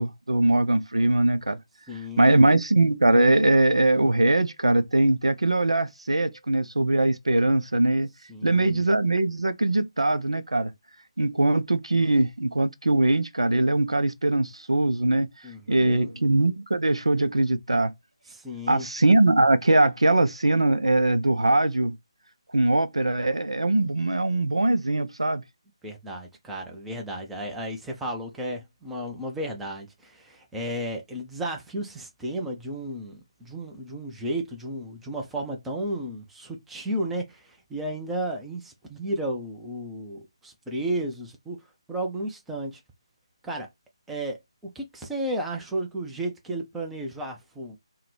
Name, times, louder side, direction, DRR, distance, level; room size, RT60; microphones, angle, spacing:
voice 1, 0.0-1.6 2.2-8.1 8.4-10.7 11.2-15.3 15.7-17.9 18.7-21.9 22.5-25.4, right 2 dB, 70° right, 0.6 m, -21 dB
voice 2, 1.9-2.4 8.3-8.8 15.4-16.1 18.3-18.9 25.8-42.8 43.4-43.7 44.1-47.8, right 1 dB, 5° right, 0.6 m, -33 dB
5.7 x 2.2 x 3.2 m
figure-of-eight pair, 150°, 3 cm